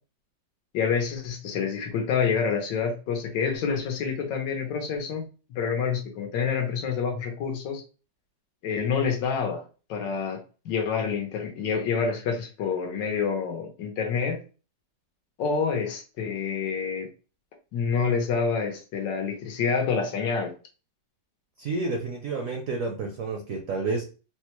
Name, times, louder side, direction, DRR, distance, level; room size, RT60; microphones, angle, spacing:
voice 1, 0.7-5.2 5.5-7.8 8.6-9.6 9.9-14.4 15.4-17.1 17.7-20.6, left 6 dB, 80° left, 3 dB, 1.5 m, -27 dB
voice 2, 21.6-24.0, right 3 dB, 65° right, 2 dB, 0.8 m, -30 dB
4.2 x 2.2 x 2.9 m, 0.34 s
omnidirectional pair, 2.0 m